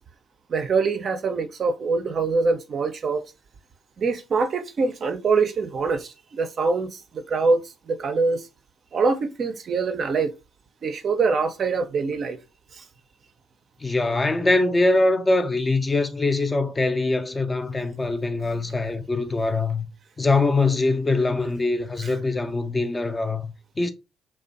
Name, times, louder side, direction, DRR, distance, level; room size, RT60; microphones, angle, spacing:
voice 1, 0.5-3.2 4.0-8.5 8.9-10.3 10.8-12.4 12.7-12.8 22.0-22.1, right 4 dB, 45° right, 0.4 m, -24 dB
voice 2, 13.8-19.9 20.2-23.9, left 2 dB, 25° left, 0.4 m, -23 dB
2.5 x 2.1 x 2.5 m
figure-of-eight pair, 50°, 0 cm